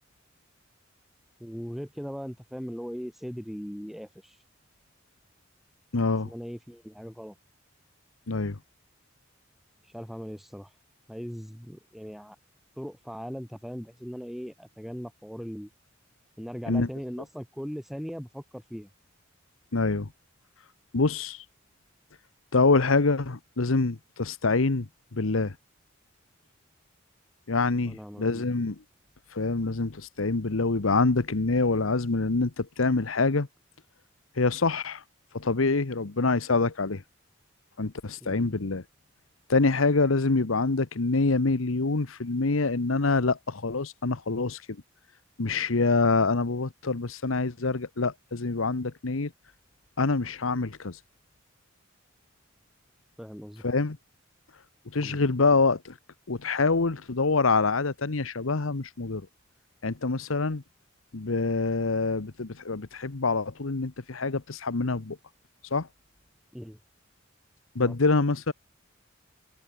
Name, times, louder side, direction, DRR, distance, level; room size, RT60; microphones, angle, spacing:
voice 1, 1.4-4.4 6.2-7.3 9.9-10.7 11.1-12.3 12.8-15.7 16.4-18.9 27.8-28.5 38.2-38.5 53.2-53.6 55.0-55.2 66.5-66.8 67.8-67.9, equal, ahead, 5.0 m, -39 dB
voice 2, 5.9-6.3 8.3-8.6 16.7-16.9 19.7-20.1 20.9-21.4 22.5-25.5 27.5-28.8 29.3-33.5 34.4-35.0 35.3-37.0 37.8-38.8 39.5-44.6 45.4-49.3 50.0-51.0 53.6-54.0 54.9-55.9 56.3-59.2 59.8-60.6 61.1-65.2 65.7-65.9 67.7-68.5, left 3 dB, 90° left, 1.1 m, -25 dB
head